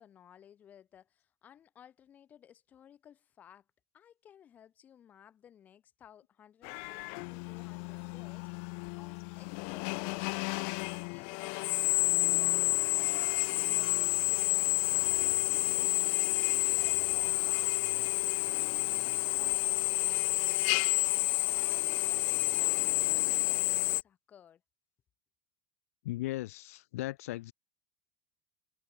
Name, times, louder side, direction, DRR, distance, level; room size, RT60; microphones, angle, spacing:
voice 1, 0.0-3.7 3.9-8.5 8.9-24.6, left 9 dB, 20° left, 6.6 m, -58 dB
Drill, 6.6-24.0, left 40 dB or more, 45° left, 0.6 m, -30 dB
voice 2, 26.0-27.5, left 17 dB, 85° left, 3.3 m, -37 dB
supercardioid pair, 180°, 8 cm